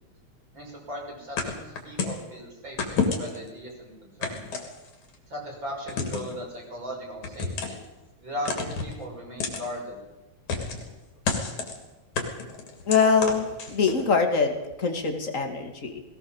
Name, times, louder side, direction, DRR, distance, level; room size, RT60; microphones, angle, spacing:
voice 1, 0.5-4.4 5.3-7.8 8.2-10.0, equal, 40° right, -1 dB, 6.5 m, -38 dB
sound 1, 1.4-2.2 2.8-3.5 4.2-5.1 5.9-6.4 7.2-7.8 8.5-8.9 9.4-9.6 10.5-10.9 11.2-11.8 12.1-14.0, left 4 dB, 80° left, 4.4 m, -29 dB
voice 2, 12.9-14.5 14.8-16.0, left 5 dB, 30° left, 5 dB, 2.4 m, -23 dB
20.5 x 18.0 x 7.3 m, 1.0 s
omnidirectional pair, 3.3 m